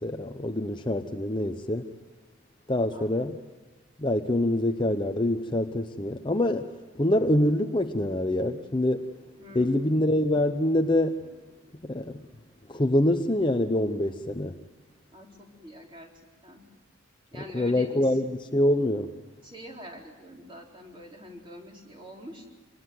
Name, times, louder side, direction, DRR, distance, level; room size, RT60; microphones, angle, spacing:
voice 1, 0.0-1.9 2.7-3.4 4.0-9.1 9.5-11.3 11.8-12.2 12.7-14.6 17.5-19.1, left 1 dB, 20° left, 0.8 m, -25 dB
voice 2, 2.9-3.3 9.4-9.8 15.1-16.1 16.4-16.6 17.3-18.2 19.4-22.5, equal, 25° right, 4.0 m, -46 dB
26.0 x 20.5 x 7.7 m
head